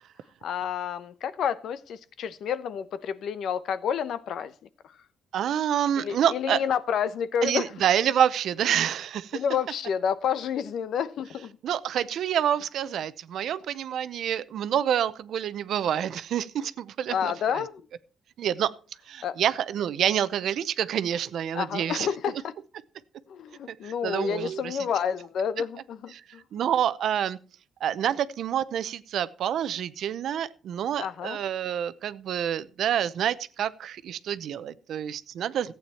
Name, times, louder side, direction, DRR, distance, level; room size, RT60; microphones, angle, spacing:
voice 1, 0.4-4.5 4.8-4.9 6.0-7.7 9.3-11.6 17.1-17.8 19.2-19.4 21.5-22.5 23.3-26.4 31.0-31.4, left 8 dB, 70° left, 14 dB, 0.9 m, -29 dB
voice 2, 5.3-6.6 7.4-9.4 11.6-17.6 18.4-18.7 19.1-22.1 23.7-24.8 26.5-27.4 27.8-35.7, right 9 dB, 70° right, 16 dB, 0.7 m, -27 dB
14.5 x 8.7 x 4.4 m, 0.38 s
cardioid pair, 120°, 0 cm